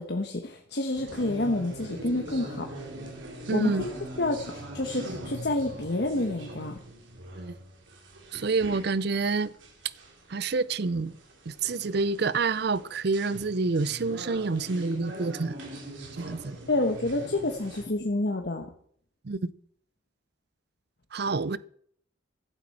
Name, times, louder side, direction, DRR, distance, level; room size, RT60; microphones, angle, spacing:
voice 1, 0.0-2.7 3.5-3.9 4.2-6.8 16.7-18.7, left 2 dB, 60° left, 1.2 m, -28 dB
sound 1, 0.9-17.9, right 1 dB, 80° right, 3.1 m, -42 dB
voice 2, 3.5-3.9 7.4-7.6 8.3-9.5 10.3-11.1 11.5-15.6 16.2-16.6 19.2-19.4 21.1-21.6, right 4 dB, 55° right, 0.6 m, -28 dB
15.0 x 12.5 x 4.3 m
head